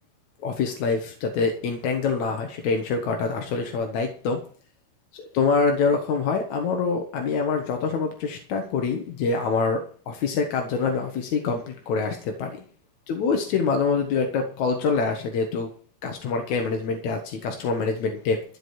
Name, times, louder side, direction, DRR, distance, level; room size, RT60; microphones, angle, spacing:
voice 1, 0.4-4.4 5.1-12.7 13.1-15.7 16.0-18.4, left 4 dB, 60° left, 3 dB, 2.1 m, -25 dB
14.5 x 5.2 x 9.4 m, 0.43 s
omnidirectional pair, 5.0 m